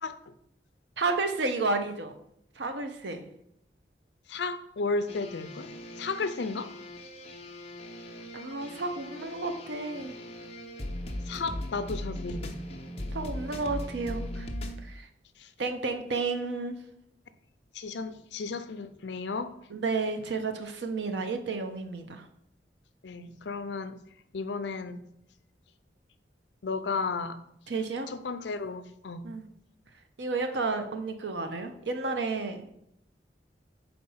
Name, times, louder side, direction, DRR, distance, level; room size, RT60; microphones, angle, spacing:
voice 1, 0.0-0.3 4.3-5.7 6.0-6.7 11.3-12.7 15.4-15.5 17.7-19.6 23.0-24.0 24.3-25.0 26.6-27.4 28.1-29.3, left 4 dB, 75° left, 11 dB, 0.5 m, -34 dB
voice 2, 1.0-2.2 2.6-3.2 8.3-10.2 13.1-14.5 14.8-15.1 15.6-16.8 19.7-22.3 27.7-28.1 29.2-29.5 30.2-32.7, right 3 dB, 80° right, 7 dB, 0.7 m, -31 dB
sound 1, 5.1-14.8, left 1 dB, 35° left, 0.7 m, -39 dB
4.4 x 4.2 x 5.5 m, 0.74 s
head